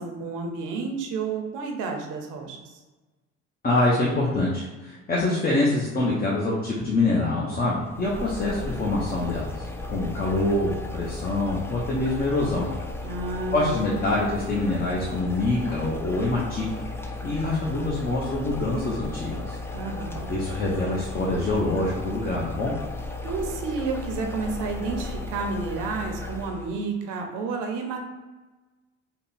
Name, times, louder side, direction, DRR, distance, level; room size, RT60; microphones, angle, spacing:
voice 1, 0.0-2.8 13.0-13.8 19.7-20.3 23.2-28.0, right 4 dB, 90° right, 3 dB, 0.8 m, -31 dB
voice 2, 3.6-12.7 13.5-16.8 17.2-19.6 20.3-22.7, left 2 dB, 30° left, -4 dB, 0.8 m, -25 dB
sound 1, 7.5-7.7 8.9-9.1 10.3-10.4 11.5-11.7 12.7-12.9 14.2-14.4 15.7-15.9 17.4-17.7 18.5-18.8 19.3-19.6 20.1-20.4 21.8-22.0 23.3-23.6 24.8-25.1, equal, 60° left, 1.2 m, -43 dB
sound 2, 7.8-26.7, left 2 dB, 10° left, 0.4 m, -35 dB
3.6 x 2.3 x 4.0 m, 1.2 s
cardioid pair, 110°, 31 cm